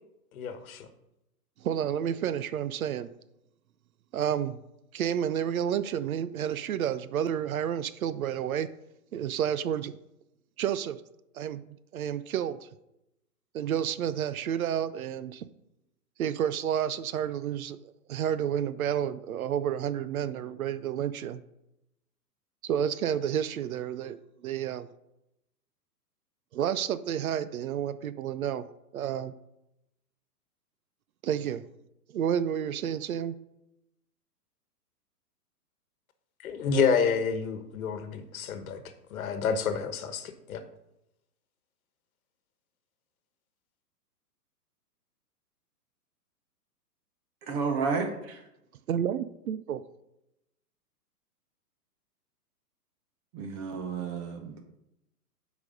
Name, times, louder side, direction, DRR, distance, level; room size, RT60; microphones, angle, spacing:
voice 1, 0.3-0.9 36.4-38.8 39.1-40.6, left 5 dB, 60° left, 9 dB, 1.3 m, -29 dB
voice 2, 1.6-3.1 4.1-4.6 4.9-8.7 9.1-9.9 10.6-11.0 11.3-12.7 13.5-15.5 16.2-17.8 18.1-21.4 22.6-24.2 24.4-24.9 26.5-28.7 28.9-29.3 31.2-31.6 32.1-33.4 48.9-49.8, right 9 dB, 60° right, 14 dB, 0.6 m, -30 dB
voice 3, 47.5-48.4 53.3-54.6, right 5 dB, 20° right, 5 dB, 0.7 m, -31 dB
8.2 x 5.1 x 5.2 m, 0.86 s
hypercardioid pair, 150°, 48 cm